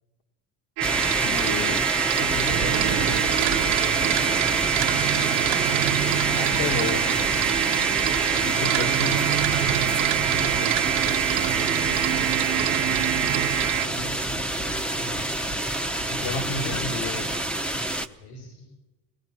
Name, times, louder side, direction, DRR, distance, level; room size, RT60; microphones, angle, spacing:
sound 1, 0.8-18.1, right 1 dB, ahead, 0.8 m, -27 dB
sound 2, 0.8-13.9, right 17 dB, 70° right, 1.0 m, -25 dB
voice 1, 1.1-1.8 2.2-3.3 6.3-7.0 8.4-9.3 10.3-10.7 16.1-17.3, left 4 dB, 55° left, 6 dB, 2.1 m, -32 dB
sound 3, 2.5-14.5, right 13 dB, 50° right, 0.6 m, -32 dB
voice 2, 3.9-5.3 6.1-7.0 11.6-11.8 12.4-15.6 16.1-17.3 18.2-18.7, left 3 dB, 70° left, 2 dB, 6.2 m, -44 dB
22.0 x 18.5 x 7.4 m, 1.2 s
cardioid pair, 135°, 42 cm